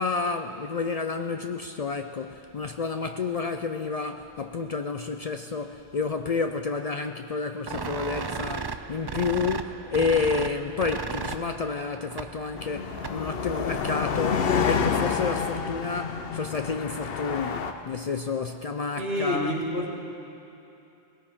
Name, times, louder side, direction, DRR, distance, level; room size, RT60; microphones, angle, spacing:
voice 1, 0.0-19.7, left 4 dB, 50° left, 7 dB, 0.5 m, -30 dB
sound 1, 7.7-13.4, right 4 dB, 35° right, 0.4 m, -35 dB
sound 2, 12.6-17.7, left 6 dB, 70° left, 1.0 m, -28 dB
voice 2, 19.0-20.0, left 1 dB, 80° right, -3 dB, 2.3 m, -28 dB
20.0 x 17.0 x 3.6 m, 2.9 s
omnidirectional pair, 1.0 m